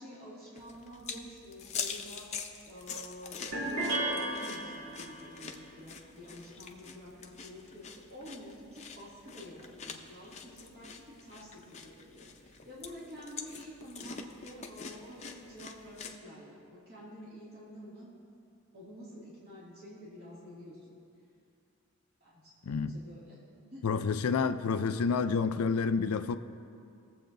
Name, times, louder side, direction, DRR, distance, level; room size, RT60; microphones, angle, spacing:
voice 1, 0.0-2.3 2.6-18.1 18.7-20.8 22.2-23.4 23.7-24.2, equal, 45° right, 2.4 m, -49 dB
sound 1, 0.6-16.2, left 6 dB, 30° left, 0.6 m, -45 dB
sound 2, 3.5-5.3, right 2 dB, 70° right, 2.9 m, -34 dB
voice 2, 22.7-23.0 23.8-26.4, left 5 dB, 85° left, 0.4 m, -29 dB
21.0 x 7.7 x 2.6 m
head